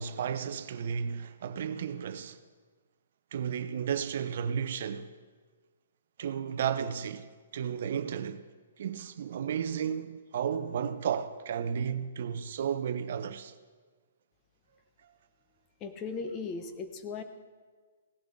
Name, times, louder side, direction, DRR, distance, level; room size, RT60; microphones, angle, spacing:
voice 1, 0.0-2.4 3.3-5.1 6.2-8.4 8.8-13.5, right 8 dB, 60° right, 0.6 m, -33 dB
voice 2, 15.8-17.2, left 4 dB, 25° left, 1.0 m, -37 dB
17.0 x 11.0 x 3.7 m
hypercardioid pair, 145°, 0 cm